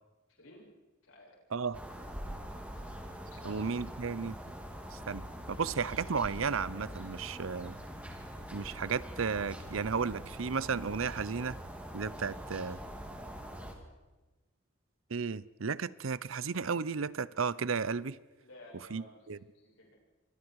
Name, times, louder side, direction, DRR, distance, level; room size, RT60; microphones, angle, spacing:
voice 1, 0.3-0.7 1.0-1.4 3.3-3.7 18.4-19.3 19.5-19.9, left 1 dB, 80° left, -1 dB, 7.8 m, -55 dB
sound 1, 1.7-13.7, equal, 5° right, 2.9 m, -44 dB
voice 2, 3.4-4.4 4.9-7.7 8.5-11.6 11.9-12.8 15.1-18.2 18.9-19.4, right 5 dB, 80° right, 19 dB, 0.7 m, -34 dB
27.5 x 25.0 x 4.8 m, 1.2 s
head